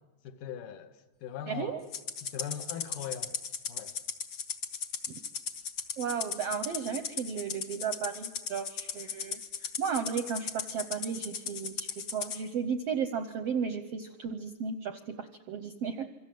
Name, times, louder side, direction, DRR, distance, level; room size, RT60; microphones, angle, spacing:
voice 1, 0.2-1.8 2.3-3.4 3.7-4.0, left 9 dB, 75° left, 2.7 m, -40 dB
voice 2, 1.5-1.8 6.0-16.1, right 6 dB, 75° right, 1.4 m, -34 dB
Rattle (instrument), 1.9-12.4, left 7 dB, 60° left, 1.4 m, -37 dB
26.5 x 24.5 x 7.7 m
omnidirectional pair, 4.0 m